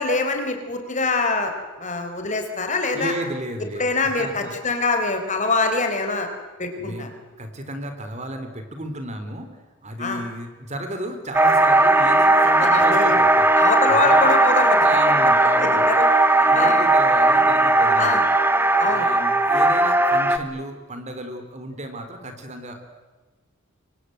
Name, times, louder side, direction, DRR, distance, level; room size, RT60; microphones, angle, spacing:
voice 1, 0.0-1.5 1.8-3.1 3.6-6.3 6.6-7.1 10.0-10.2 12.6-13.2 13.6-15.0 15.6-16.0 16.3-16.8 18.0-18.2 18.8-19.1, left 3 dB, 35° left, 5 dB, 4.1 m, -24 dB
voice 2, 2.9-4.5 6.8-7.1 7.4-9.5 9.8-13.5 13.9-14.3 14.8-15.9 16.4-18.2 18.8-22.9, right 1 dB, 35° right, 7 dB, 3.8 m, -33 dB
sound 1, 11.3-20.4, right 2 dB, 10° right, 1.2 m, -17 dB
28.5 x 24.5 x 8.0 m, 1.3 s
head